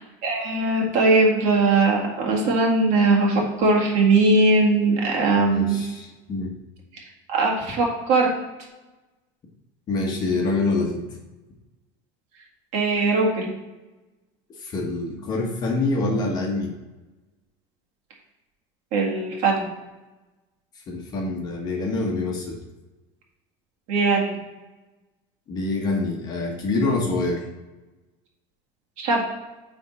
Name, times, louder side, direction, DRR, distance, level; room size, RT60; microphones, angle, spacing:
voice 1, 0.2-5.8 7.3-8.3 12.7-13.5 18.9-19.7 23.9-24.4 29.0-29.2, right 3 dB, 50° right, -2 dB, 1.9 m, -20 dB
voice 2, 5.3-6.5 9.9-11.1 14.6-16.8 20.9-22.6 25.5-27.4, left 3 dB, 30° left, 0 dB, 1.2 m, -25 dB
9.1 x 3.6 x 4.2 m, 1.1 s
cardioid pair, 160°, 14 cm